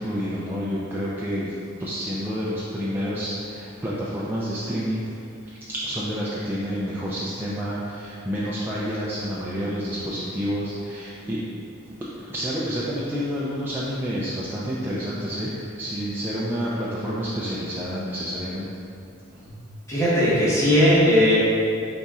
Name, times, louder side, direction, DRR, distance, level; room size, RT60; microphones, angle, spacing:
voice 1, 0.0-5.1 5.5-11.4 11.8-18.7 19.3-19.4, equal, 10° right, -8 dB, 0.4 m, -29 dB
voice 2, 19.9-21.4, left 1 dB, 15° left, -9 dB, 1.1 m, -18 dB
4.9 x 4.1 x 2.3 m, 2.6 s
head